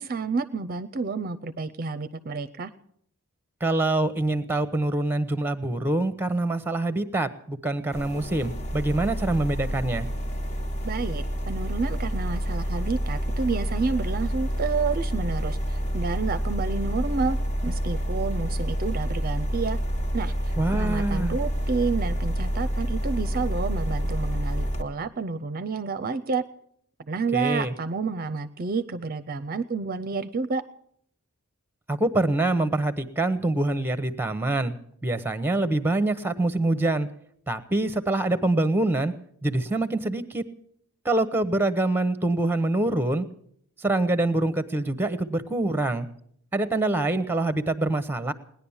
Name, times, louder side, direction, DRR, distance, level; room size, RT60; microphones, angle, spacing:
voice 1, 0.0-2.7 10.8-17.4 17.6-19.8 20.1-26.4 27.1-30.6, right 4 dB, 40° right, 11 dB, 0.5 m, -29 dB
voice 2, 3.6-10.1 20.6-21.4 27.3-27.7 31.9-34.7 35.0-37.1 37.5-39.1 39.4-40.4 41.0-43.3 43.8-46.1 46.5-48.3, right 2 dB, 10° right, 13 dB, 0.8 m, -25 dB
sound 1, 7.9-24.8, equal, 30° left, 1.2 m, -28 dB
18.5 x 10.5 x 7.1 m, 0.68 s
head